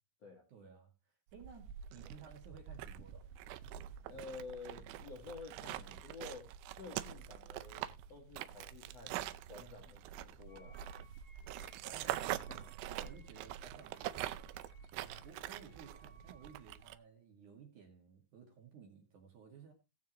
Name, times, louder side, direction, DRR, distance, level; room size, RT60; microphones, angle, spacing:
voice 1, 0.5-0.9 1.3-3.3 11.5-14.4 14.9-19.7, right 6 dB, 50° right, 2.9 m, -57 dB
sound 1, 1.3-17.0, right 12 dB, 85° right, 2.9 m, -45 dB
voice 2, 4.1-10.8 11.8-12.0 12.5-12.6, left 4 dB, 50° left, 2.1 m, -51 dB
Wind instrument woodwind instrument, 10.4-16.8, right 3 dB, 10° left, 3.6 m, -66 dB
18.5 x 7.2 x 3.0 m
omnidirectional pair, 5.2 m